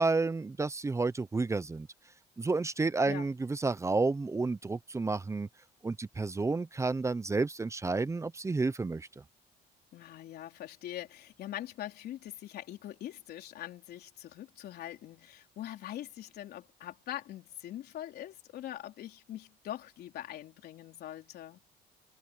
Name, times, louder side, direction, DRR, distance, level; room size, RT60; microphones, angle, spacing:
voice 1, 0.0-1.9 2.4-5.5 5.8-9.1, right 3 dB, 15° right, 0.7 m, -30 dB
voice 2, 9.9-21.6, left 12 dB, 70° left, 4.0 m, -43 dB
cardioid pair, 110°, 17 cm